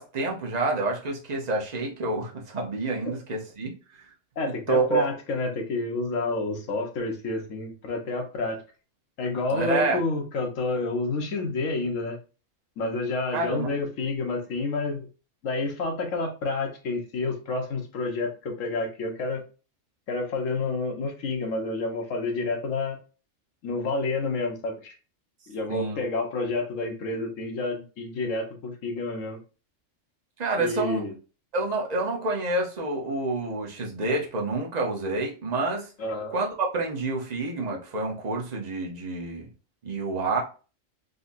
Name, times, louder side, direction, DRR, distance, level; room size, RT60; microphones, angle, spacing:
voice 1, 0.0-3.8 4.7-5.1 9.5-10.0 13.3-13.8 25.7-26.0 30.4-31.0 31.5-35.9 36.3-39.5 39.8-40.4, right 3 dB, 35° right, 0.8 m, -28 dB
voice 2, 4.4-8.6 9.2-12.2 12.8-15.1 15.4-19.4 20.1-23.0 23.6-25.0 25.5-29.4 30.6-31.1 36.0-36.3, left 3 dB, 75° left, 1.3 m, -29 dB
3.9 x 2.8 x 2.5 m
omnidirectional pair, 1.3 m